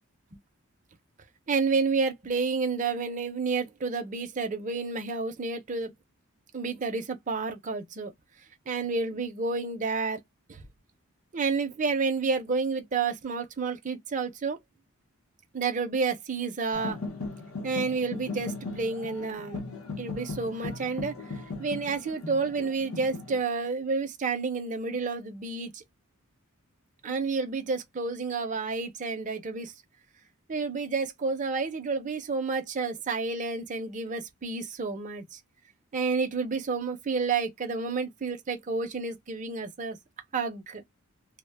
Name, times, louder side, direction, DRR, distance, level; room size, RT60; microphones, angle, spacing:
voice 1, 1.5-5.9 6.5-8.1 8.7-10.2 10.5-10.6 11.3-14.6 15.5-17.0 17.6-19.6 20.0-25.8 27.0-29.7 30.5-35.4 35.9-40.0 40.3-40.8, right 4 dB, 35° right, 0.5 m, -30 dB
sound 1, 16.7-23.4, left 3 dB, 70° left, 0.7 m, -38 dB
2.1 x 2.0 x 3.2 m
head